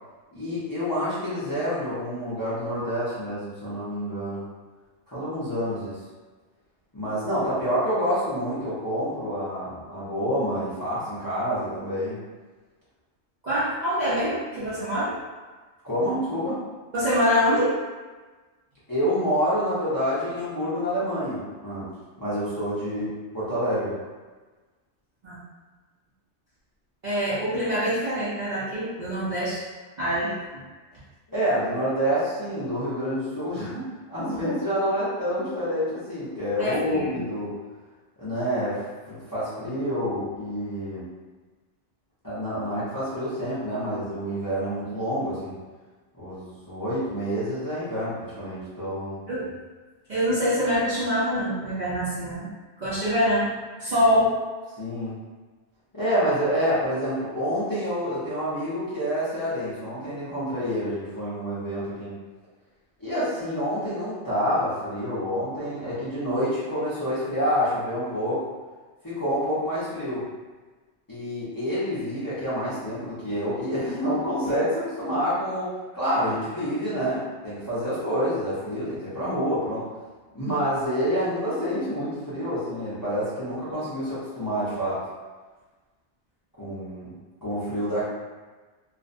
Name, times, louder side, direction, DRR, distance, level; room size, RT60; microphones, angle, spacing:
voice 1, 0.3-4.4 5.1-6.0 6.9-12.2 15.8-16.6 18.9-21.9 22.2-23.9 31.3-37.5 38.2-41.1 42.2-45.6 46.1-49.2 54.8-55.2 55.9-62.1 63.0-68.5 69.0-70.3 71.1-79.8 80.3-85.0 86.6-87.1 87.4-88.0, equal, 25° left, -12 dB, 0.5 m, -28 dB
voice 2, 13.4-15.2 16.9-17.7 25.2-25.4 27.0-29.6 30.0-30.6 36.6-37.2 49.3-49.5 50.1-52.5 52.8-53.5 53.8-54.3, equal, 50° right, -10 dB, 0.5 m, -25 dB
2.4 x 2.1 x 2.5 m, 1.3 s
omnidirectional pair, 1.2 m